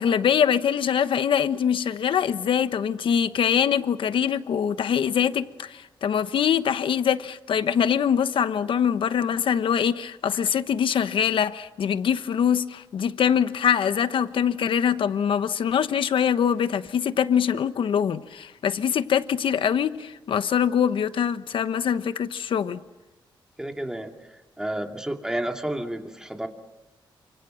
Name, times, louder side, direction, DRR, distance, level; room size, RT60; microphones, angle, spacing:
voice 1, 0.0-22.8, left 8 dB, 75° left, 1.1 m, -23 dB
voice 2, 23.6-26.5, right 1 dB, 5° right, 2.2 m, -31 dB
29.5 x 26.0 x 6.4 m
wide cardioid pair, 155°, 9 cm